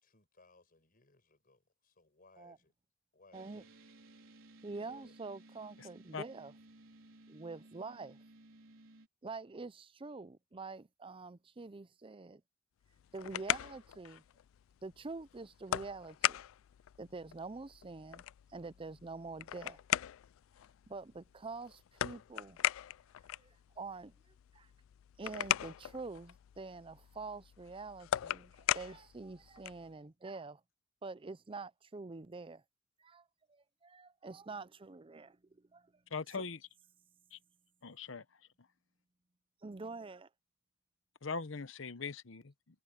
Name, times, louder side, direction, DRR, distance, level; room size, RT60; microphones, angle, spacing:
voice 1, 0.0-2.7 3.1-3.7 4.9-5.2, left 2 dB, 45° left, 5.2 m, -65 dB
voice 2, 3.3-3.6 4.6-6.5 7.3-8.2 9.2-12.4 13.1-14.2 14.8-16.4 17.0-18.2 18.5-19.8 20.9-22.6 23.3-24.7 25.2-30.6 31.0-32.6 33.0-36.0 39.6-40.3, right 3 dB, 25° right, 0.5 m, -46 dB
sound 1, 3.3-9.1, right 2 dB, 85° right, 4.3 m, -58 dB
sound 2, 12.8-29.9, left 12 dB, 85° left, 0.3 m, -40 dB
voice 3, 36.1-36.6 37.3-37.4 37.8-38.2 41.2-42.8, left 4 dB, 70° left, 1.0 m, -41 dB
head